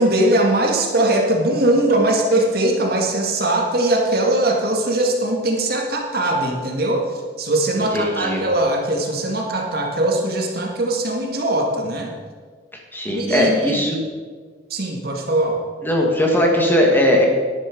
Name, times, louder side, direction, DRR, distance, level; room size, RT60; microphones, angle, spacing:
voice 1, 0.0-7.1 7.4-12.1 13.1-13.8 14.7-15.6, right 1 dB, 55° right, 1 dB, 2.0 m, -20 dB
voice 2, 7.9-8.4 12.9-14.0 15.8-17.3, left 1 dB, 10° left, 0 dB, 1.7 m, -18 dB
11.0 x 10.5 x 5.2 m, 1.6 s
head